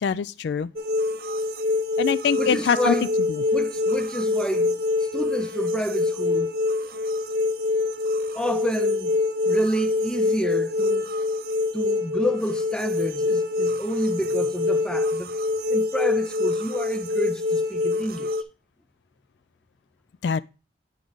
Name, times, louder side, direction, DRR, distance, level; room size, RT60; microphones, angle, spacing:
voice 1, 0.0-0.7 2.0-2.9 20.2-20.4, left 6 dB, 65° left, 0.3 m, -23 dB
sound 1, 0.8-18.4, left 3 dB, 50° right, 0.6 m, -25 dB
voice 2, 2.4-3.1 3.5-6.5 8.3-9.1 9.5-11.1 11.7-15.3 15.7-18.3, equal, 5° left, 0.5 m, -29 dB
9.0 x 4.9 x 3.8 m
head